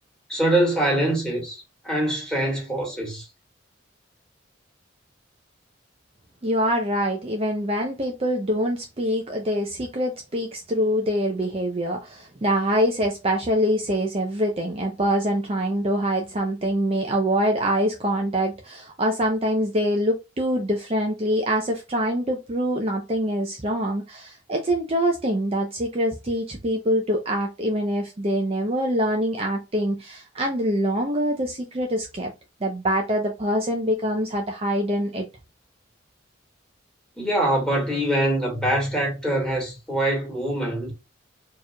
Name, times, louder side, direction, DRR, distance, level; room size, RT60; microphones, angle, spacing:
voice 1, 0.3-3.3 37.2-40.9, right 1 dB, 5° left, 1.9 m, -24 dB
voice 2, 6.4-32.3 32.6-35.3, equal, 30° right, 0.6 m, -24 dB
4.5 x 3.0 x 2.2 m
head